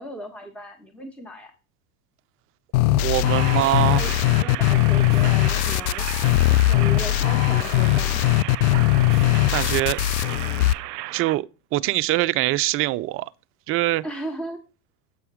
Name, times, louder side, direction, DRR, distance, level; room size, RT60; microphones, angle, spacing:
voice 1, 0.0-1.5 3.5-4.1 4.4-6.1 6.4-8.2 14.0-14.6, right 1 dB, ahead, 1.2 m, -36 dB
sound 1, 2.7-10.7, left 16 dB, 60° left, 0.5 m, -20 dB
voice 2, 2.9-4.0 9.4-10.0 11.1-11.5 11.7-13.3 13.7-14.0, right 17 dB, 30° right, 0.4 m, -23 dB
sound 2, 3.2-11.4, right 17 dB, 75° right, 0.6 m, -35 dB
7.8 x 5.6 x 4.8 m
hypercardioid pair, 90°, 48 cm